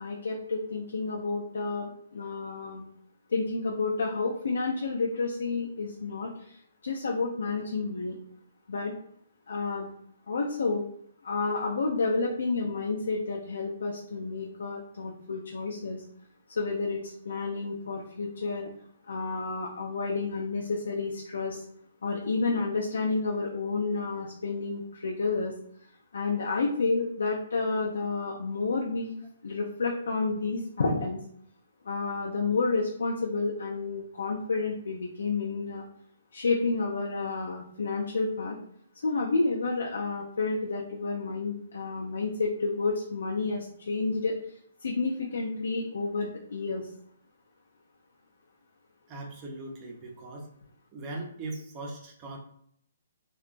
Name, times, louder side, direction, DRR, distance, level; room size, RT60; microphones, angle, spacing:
voice 1, 0.0-2.8 3.3-6.6 6.8-8.2 8.7-8.9 9.5-9.9 10.3-10.9 11.2-16.0 16.5-18.7 19.1-21.6 22.0-25.5 26.1-29.1 29.4-31.2 31.8-35.8 36.3-38.6 39.0-44.3 44.8-46.9, left 3 dB, 80° left, -1 dB, 0.4 m, -30 dB
voice 2, 49.1-50.5 50.9-52.4, right 2 dB, 25° right, 0 dB, 0.6 m, -39 dB
2.8 x 2.3 x 2.5 m, 0.69 s
hypercardioid pair, 160°, 0 cm